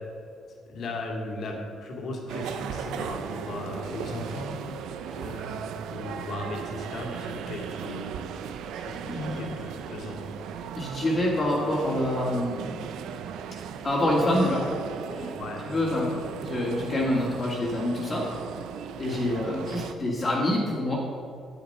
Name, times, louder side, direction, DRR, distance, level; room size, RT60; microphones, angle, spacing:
voice 1, 0.7-1.5 1.8-4.5 5.1-8.2 8.8-10.2 15.4-15.6 16.1-16.2, left 2 dB, 50° left, 0 dB, 2.2 m, -37 dB
sound 1, 2.3-19.9, right 7 dB, 85° right, 0.6 m, -37 dB
voice 2, 9.0-9.4 10.8-13.0 13.8-14.8 15.1-15.3 15.6-18.3 19.0-21.0, left 1 dB, 25° left, -4 dB, 1.9 m, -27 dB
10.0 x 9.3 x 5.4 m, 2.4 s
cardioid pair, 160°, 0 cm